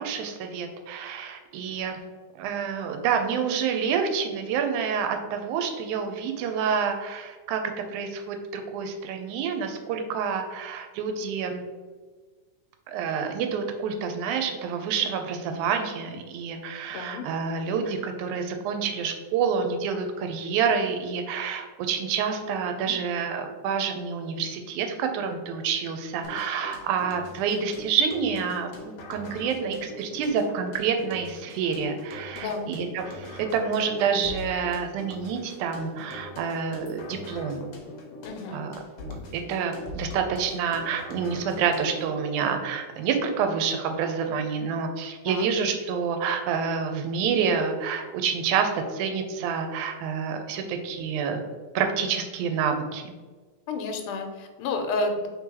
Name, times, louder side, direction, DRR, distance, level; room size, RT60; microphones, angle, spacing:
voice 1, 0.0-2.0 2.4-7.6 7.9-11.6 12.9-28.7 29.1-37.7 38.5-51.4 51.8-53.1, right 6 dB, 85° right, 5 dB, 2.0 m, -28 dB
voice 2, 16.9-17.3 22.8-22.9 32.4-32.7 38.2-38.7 45.3-45.5 53.7-55.3, left 3 dB, 90° left, 5 dB, 2.1 m, -31 dB
sound 1, 26.2-42.2, left 2 dB, 75° left, 1.4 m, -42 dB
4.4 x 3.7 x 2.8 m, 1.4 s
omnidirectional pair, 3.5 m